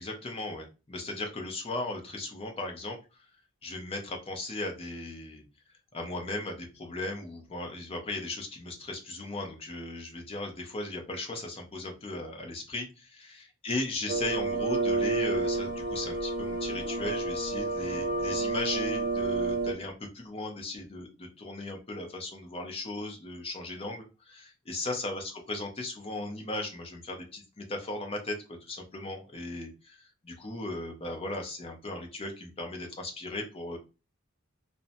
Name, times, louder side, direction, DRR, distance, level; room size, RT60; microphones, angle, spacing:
voice 1, 0.0-3.2 3.6-5.4 5.9-28.4 28.7-33.8, left 2 dB, 30° left, 2 dB, 0.6 m, -37 dB
sound 1, 14.1-19.7, right 3 dB, 40° right, 0.5 m, -30 dB
2.6 x 2.1 x 2.6 m, 0.30 s
head